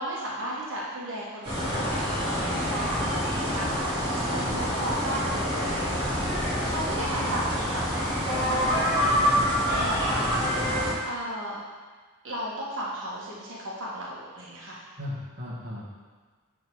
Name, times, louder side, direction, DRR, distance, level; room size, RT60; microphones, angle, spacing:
voice 1, 0.0-6.1 6.7-10.4 11.0-11.6 12.2-14.8, right 1 dB, 60° right, -5 dB, 1.6 m, -35 dB
sound 1, 1.4-10.9, equal, 20° right, 2.6 m, -26 dB
voice 2, 10.3-10.7 15.0-15.9, left 1 dB, 45° right, -6 dB, 1.6 m, -37 dB
10.5 x 3.8 x 4.8 m, 1.5 s
head